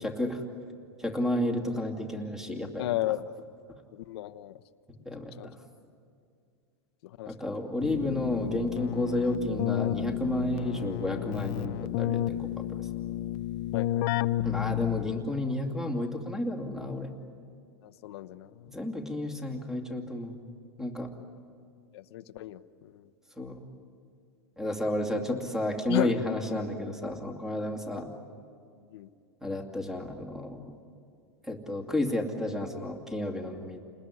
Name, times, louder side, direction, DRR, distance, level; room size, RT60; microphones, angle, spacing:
voice 1, 0.0-0.4 1.0-2.9 5.1-5.6 7.3-12.9 14.4-17.1 18.7-20.4 20.8-21.1 23.4-23.6 24.6-28.1 29.4-30.6 31.4-33.8, left 1 dB, 5° right, 4 dB, 2.4 m, -31 dB
voice 2, 2.8-3.2 3.9-4.6 5.4-5.5 7.0-7.3 13.7-14.3 17.8-18.8 21.9-23.1 25.9-26.2 28.9-29.1, left 15 dB, 70° left, 12 dB, 1.0 m, -34 dB
Keyboard (musical), 7.8-15.4, left 14 dB, 50° left, 0.6 m, -31 dB
29.5 x 20.5 x 9.9 m, 2.3 s
supercardioid pair, 150°, 14 cm